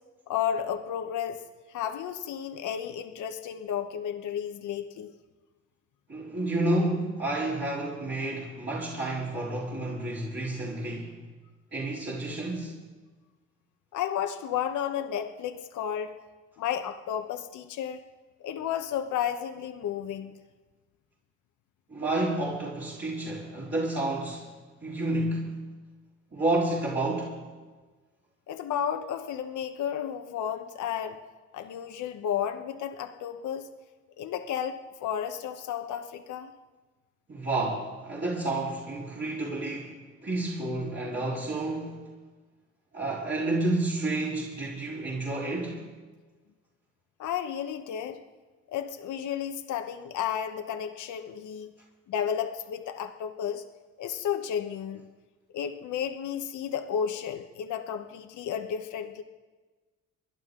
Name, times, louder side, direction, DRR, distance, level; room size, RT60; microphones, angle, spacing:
voice 1, 0.3-1.4 1.7-5.1 13.9-16.1 16.6-18.0 18.4-20.3 28.5-31.2 31.5-33.7 34.2-36.5 47.2-48.2 48.7-51.7 52.1-53.6 54.0-55.0 55.5-59.2, left 9 dB, 75° left, 6 dB, 1.1 m, -32 dB
voice 2, 6.1-11.2 11.7-12.7 21.9-24.5 24.8-25.6 26.3-27.4 37.3-39.9 40.2-42.0 42.9-45.9, right 2 dB, 40° right, -8 dB, 4.0 m, -30 dB
28.5 x 11.5 x 3.8 m, 1.3 s
cardioid pair, 90°, 30 cm